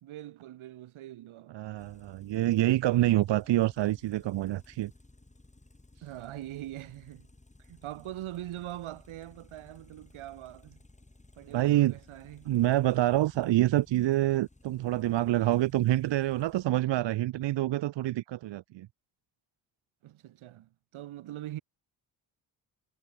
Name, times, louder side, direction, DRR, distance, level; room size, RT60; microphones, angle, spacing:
voice 1, 0.0-1.6 6.0-7.3 7.6-10.8 11.3-12.5 20.0-21.6, right 14 dB, 80° right, 1.8 m, -42 dB
voice 2, 1.5-4.9 11.5-12.0 12.5-18.9, right 15 dB, 60° right, 0.7 m, -26 dB
sound 1, 1.8-16.6, left 2 dB, 15° left, 4.7 m, -58 dB
cardioid pair, 85°, 48 cm